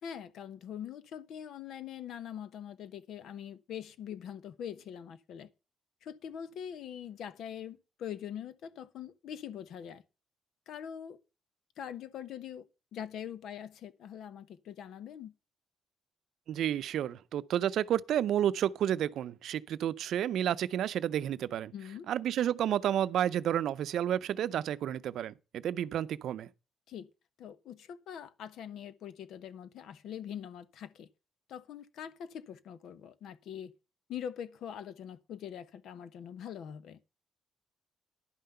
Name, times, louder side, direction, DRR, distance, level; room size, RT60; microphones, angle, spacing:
voice 1, 0.0-5.5 6.0-10.0 10.7-11.2 11.8-12.7 12.9-15.3 21.7-22.1 26.9-27.1 27.4-31.1 31.5-33.7 34.1-37.0, left 9 dB, 75° left, 1.0 m, -43 dB
voice 2, 16.5-21.7 22.1-26.5, right 10 dB, 75° right, 0.6 m, -31 dB
11.0 x 5.7 x 6.6 m
cardioid pair, 90°, 0 cm